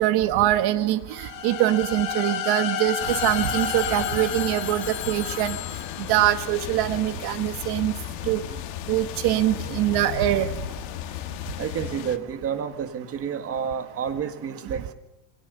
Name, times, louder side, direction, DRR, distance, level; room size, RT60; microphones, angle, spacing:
voice 1, 0.0-5.6 6.0-7.9 8.3-8.4 8.9-10.5, right 13 dB, 50° right, 10 dB, 1.7 m, -23 dB
sound 1, 1.1-5.9, left 8 dB, 45° left, 4.5 m, -31 dB
Telephone, 2.9-7.2, left 10 dB, 25° left, 1.7 m, -37 dB
sound 2, 3.0-12.2, left 14 dB, 80° left, 1.8 m, -35 dB
voice 2, 11.6-14.9, right 7 dB, 30° right, 8 dB, 1.9 m, -30 dB
27.5 x 22.5 x 6.9 m, 0.87 s
cardioid pair, 180°, 47 cm